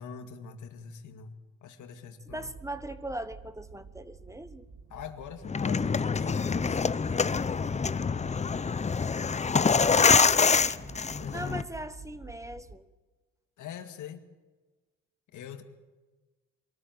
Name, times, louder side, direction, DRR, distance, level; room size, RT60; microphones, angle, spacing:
voice 1, 0.0-1.4 1.6-2.5 4.9-6.8 11.2-11.7 13.6-14.2 15.3-15.6, left 7 dB, 75° left, 7 dB, 2.2 m, -43 dB
voice 2, 2.3-4.7 9.8-10.9 11.3-12.9, right 1 dB, 10° right, 12 dB, 1.1 m, -40 dB
sound 1, 2.3-12.7, right 4 dB, 65° right, 2.8 m, -49 dB
sound 2, 5.4-11.6, left 5 dB, 25° left, 0.6 m, -25 dB
23.5 x 14.0 x 9.3 m, 1.3 s
cardioid pair, 90°, 30 cm